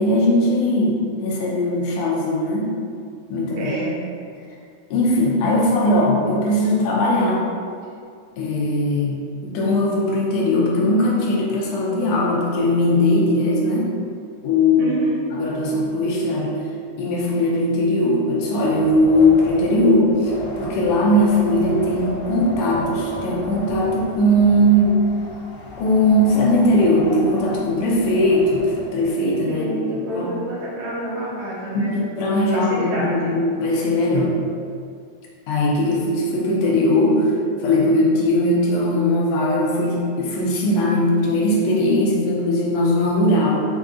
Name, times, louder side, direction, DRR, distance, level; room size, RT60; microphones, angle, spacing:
voice 1, 0.0-2.7 3.3-3.7 4.9-7.5 8.4-9.2 9.4-13.9 14.4-14.9 15.3-16.6 17.0-25.0 25.7-30.3 31.9-34.4 35.5-37.3 37.6-43.7, left 1 dB, 75° left, -4 dB, 1.7 m, -19 dB
voice 2, 3.6-4.0 14.8-15.2 29.5-32.0 32.5-33.4, right 1 dB, 70° right, -6 dB, 2.3 m, -28 dB
Wind, 18.7-29.1, left 1 dB, 50° left, 0.9 m, -35 dB
5.2 x 2.6 x 3.6 m, 2.3 s
omnidirectional pair, 3.8 m